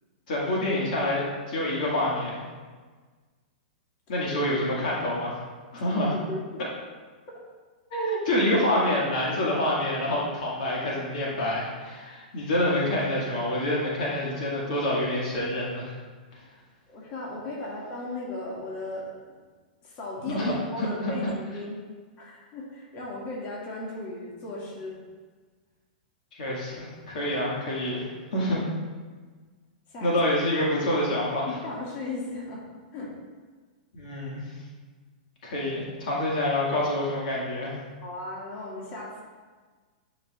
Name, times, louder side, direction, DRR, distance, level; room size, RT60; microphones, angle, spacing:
voice 1, 0.3-2.4 4.1-5.4 5.7-6.1 7.9-15.9 20.3-21.3 26.3-28.6 30.0-31.6 33.9-34.4 35.4-37.8, left 1 dB, 65° left, -5 dB, 1.9 m, -27 dB
voice 2, 5.7-6.4 16.9-19.4 19.8-21.8 22.2-25.0 29.9-30.2 31.4-32.6 32.9-33.1 38.0-39.2, left 2 dB, 40° left, -4 dB, 2.0 m, -36 dB
10.5 x 5.0 x 2.4 m, 1.4 s
hypercardioid pair, 120°, 5 cm